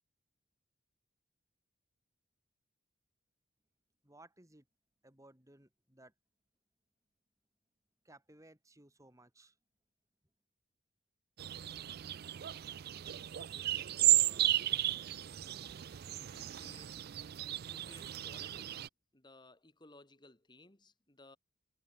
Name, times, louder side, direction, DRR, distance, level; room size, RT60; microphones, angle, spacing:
voice 1, 4.0-4.6 5.0-6.1 8.0-9.5, right 1 dB, 15° right, 3.9 m, -60 dB
sound 1, 11.4-18.9, right 14 dB, 50° right, 0.4 m, -34 dB
voice 2, 13.5-14.6 16.1-17.0 17.5-18.8 19.1-21.4, left 2 dB, 20° left, 2.2 m, -60 dB
head